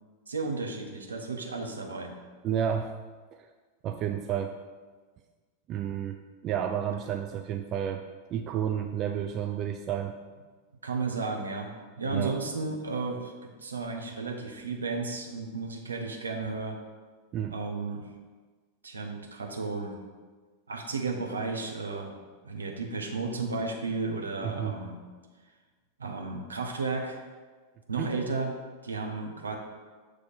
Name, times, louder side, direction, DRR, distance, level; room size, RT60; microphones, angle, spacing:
voice 1, 0.3-2.1 10.8-13.3 13.6-16.8 17.5-18.0 18.8-20.0 20.7-22.2 22.4-25.0 26.0-27.2 27.9-28.5 28.8-29.6, right 3 dB, 75° right, 2 dB, 0.9 m, -33 dB
voice 2, 2.4-2.9 3.8-4.5 5.7-8.0 8.3-10.2 12.1-12.3 17.3-17.6 24.4-24.7 28.0-28.1, right 9 dB, 35° right, 5 dB, 0.3 m, -31 dB
6.9 x 3.3 x 5.8 m, 1.4 s
figure-of-eight pair, 90°, 0 cm